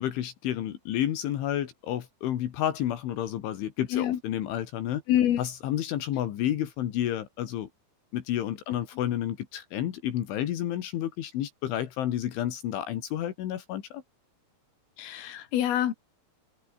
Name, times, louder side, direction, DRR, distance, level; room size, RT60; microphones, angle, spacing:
voice 1, 0.0-5.0 5.4-7.7 8.1-14.0, left 11 dB, 75° left, 4.4 m, -30 dB
voice 2, 5.1-5.5 8.7-8.8 15.0-15.9, left 11 dB, 90° left, 4.9 m, -26 dB
omnidirectional pair, 5.7 m